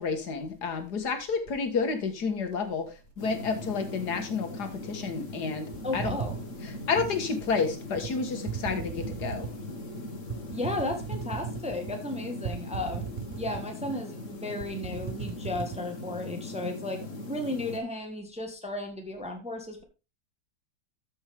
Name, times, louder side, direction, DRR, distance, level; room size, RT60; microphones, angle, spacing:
voice 1, 0.0-6.2 6.6-9.5, left 5 dB, 65° left, 6 dB, 2.1 m, -30 dB
sound 1, 3.2-17.8, left 1 dB, 45° left, 1.9 m, -40 dB
sound 2, 5.7-7.2 7.9-8.1 8.4-9.6 10.3-11.9 12.4-13.9 14.2-14.3 14.6-15.8, right 7 dB, 65° right, 0.4 m, -37 dB
voice 2, 5.8-6.4 10.5-13.1 13.4-19.8, left 2 dB, 5° right, 3 dB, 1.3 m, -34 dB
13.5 x 5.4 x 3.4 m, 0.28 s
omnidirectional pair, 1.9 m